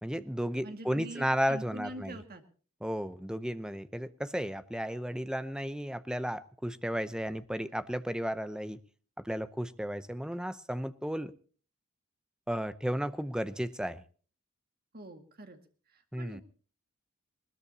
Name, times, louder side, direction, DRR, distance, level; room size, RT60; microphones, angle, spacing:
voice 1, 0.0-2.2 2.8-8.8 9.2-11.3 12.5-14.0 16.1-16.4, equal, 5° right, 13 dB, 0.7 m, -34 dB
voice 2, 0.6-2.4 14.9-15.6 15.9-16.4, right 1 dB, 45° right, 6 dB, 2.1 m, -44 dB
20.5 x 19.5 x 2.9 m, 0.41 s
head